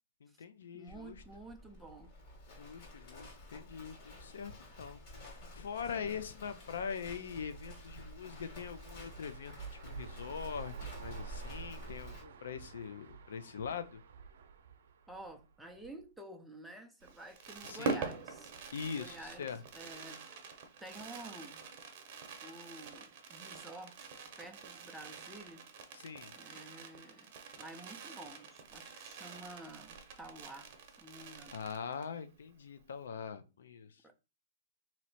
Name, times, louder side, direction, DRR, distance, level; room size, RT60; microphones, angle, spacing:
voice 1, 0.2-1.2 2.5-9.5 9.9-14.0 17.6-18.0 18.7-19.6 25.9-26.4 31.5-34.1, left 6 dB, 80° left, 0.5 m, -43 dB
voice 2, 0.7-2.1 15.1-18.5 18.9-19.5 19.7-20.3 20.8-21.7 22.4-24.1 24.4-25.6 26.3-30.7 31.0-31.6 34.0-34.1, right 2 dB, ahead, 0.5 m, -50 dB
Livestock farm animals working animals, 0.9-12.2, left 1 dB, 35° left, 1.7 m, -51 dB
sound 1, 6.8-16.0, right 6 dB, 70° right, 0.6 m, -50 dB
Fireworks, 17.0-32.2 32.5-32.6 32.8-33.1, right 4 dB, 40° right, 0.8 m, -45 dB
3.1 x 2.7 x 4.1 m
hypercardioid pair, 160°, 0 cm